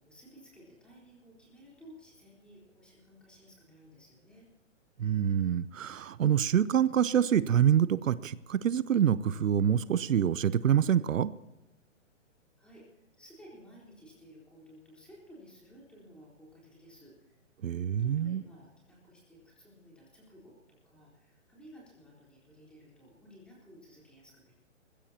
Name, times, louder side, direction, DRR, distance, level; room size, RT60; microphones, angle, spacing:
voice 1, 0.0-4.5 12.6-12.8 13.2-17.4 18.0-24.5, equal, 5° left, -5 dB, 4.0 m, -55 dB
voice 2, 5.0-11.3 17.6-18.4, right 9 dB, 85° right, 17 dB, 0.8 m, -26 dB
21.0 x 15.5 x 2.9 m, 1.0 s
hypercardioid pair, 160°, 38 cm